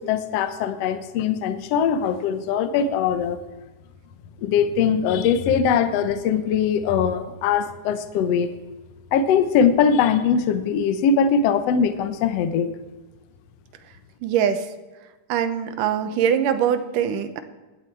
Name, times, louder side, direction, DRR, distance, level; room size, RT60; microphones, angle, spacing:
voice 1, 0.0-3.4 4.4-8.5 9.1-12.7, left 7 dB, 65° left, 11 dB, 1.6 m, -21 dB
voice 2, 14.2-14.7 15.3-17.4, right 8 dB, 80° right, 10 dB, 2.5 m, -22 dB
16.0 x 11.5 x 4.6 m, 1.2 s
omnidirectional pair, 3.8 m